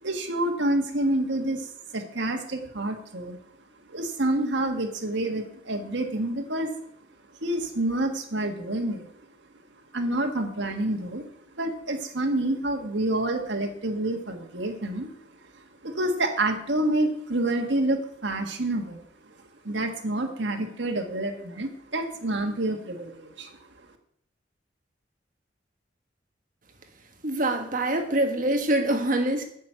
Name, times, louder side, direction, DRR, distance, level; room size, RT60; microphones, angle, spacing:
voice 1, 0.0-1.7 1.9-3.4 3.9-6.7 7.4-9.0 9.9-11.2 11.6-15.1 15.8-19.0 19.6-23.5, right 1 dB, 70° right, 3 dB, 1.6 m, -28 dB
voice 2, 27.2-29.4, right 1 dB, 45° right, 4 dB, 1.5 m, -24 dB
8.4 x 6.0 x 8.0 m, 0.67 s
head